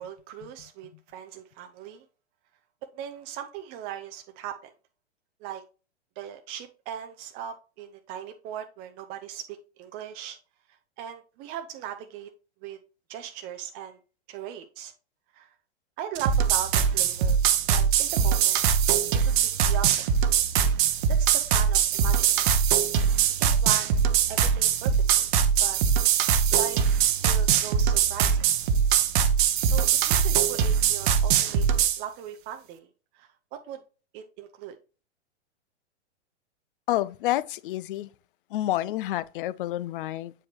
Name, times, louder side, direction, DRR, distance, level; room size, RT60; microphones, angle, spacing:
voice 1, 0.0-2.0 2.9-4.7 5.4-5.6 6.2-10.4 11.0-12.3 12.6-12.8 13.1-14.0 14.3-14.9 15.3-15.5 16.0-17.4 17.7-18.6 19.2-19.9 21.1-22.5 23.4-24.0 24.3-25.3 25.6-25.8 26.5-28.7 29.6-31.7 32.0-32.9 33.1-33.8 34.1-34.8, right 10 dB, 25° right, 0.5 m, -38 dB
sound 1, 16.1-32.0, right 8 dB, 45° right, 0.8 m, -22 dB
voice 2, 36.9-38.1 38.5-40.3, left 15 dB, 50° left, 0.5 m, -29 dB
7.7 x 5.0 x 2.9 m
hypercardioid pair, 110°, 34 cm